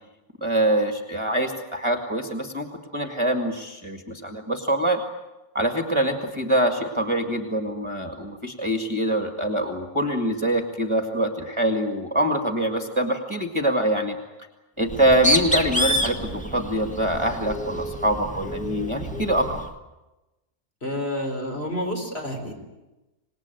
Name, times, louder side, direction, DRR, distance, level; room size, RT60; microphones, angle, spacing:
voice 1, 0.4-2.7 2.9-5.0 5.5-14.2 14.8-19.5, right 1 dB, 20° right, 4 dB, 2.0 m, -24 dB
Bird, 14.8-19.7, equal, 5° left, 1.6 m, -28 dB
voice 2, 20.8-22.5, left 1 dB, 40° left, 2 dB, 4.7 m, -29 dB
26.5 x 19.5 x 9.1 m, 1.1 s
omnidirectional pair, 1.6 m